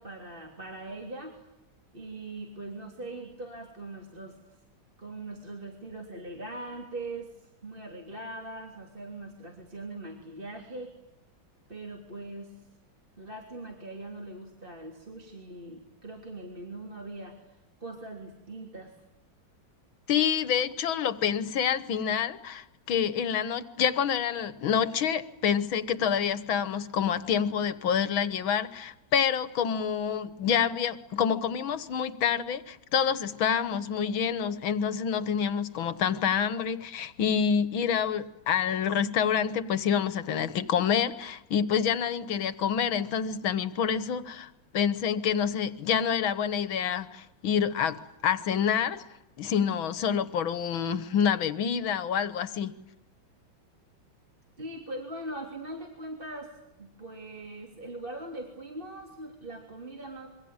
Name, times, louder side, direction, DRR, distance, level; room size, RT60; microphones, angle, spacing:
voice 1, 0.0-1.4 1.9-4.4 5.0-7.3 7.6-11.0 11.7-12.6 13.2-17.4 17.8-18.9 54.6-56.5 56.8-60.3, right 2 dB, 25° right, 1 dB, 3.4 m, -41 dB
voice 2, 20.1-49.0 49.4-52.7, left 8 dB, 80° left, 14 dB, 2.1 m, -27 dB
27.0 x 24.0 x 9.0 m, 0.89 s
omnidirectional pair, 2.2 m